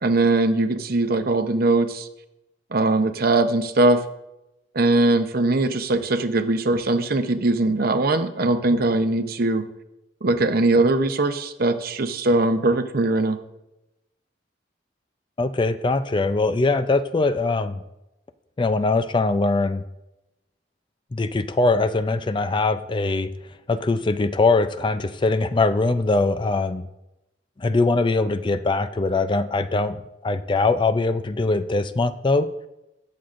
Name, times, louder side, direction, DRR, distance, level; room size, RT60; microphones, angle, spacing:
voice 1, 0.0-2.1 2.7-4.0 4.7-9.7 10.2-13.4, right 2 dB, 55° right, 9 dB, 0.8 m, -21 dB
voice 2, 15.4-17.8 18.6-19.8 21.1-23.3 23.7-26.9 27.6-32.5, left 3 dB, 25° left, 11 dB, 0.4 m, -22 dB
22.5 x 7.7 x 2.5 m, 0.94 s
head